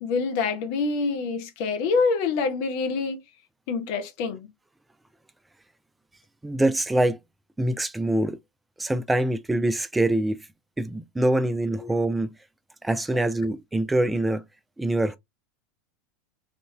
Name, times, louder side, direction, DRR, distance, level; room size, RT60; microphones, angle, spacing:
voice 1, 0.0-3.2 3.7-4.5 11.8-11.9, left 4 dB, 50° left, 0.7 m, -26 dB
voice 2, 6.4-7.2 7.6-8.4 8.8-10.4 10.8-12.3 12.8-14.4 14.8-15.2, right 1 dB, 10° right, 0.4 m, -24 dB
3.6 x 2.5 x 2.2 m
figure-of-eight pair, 80°, 0 cm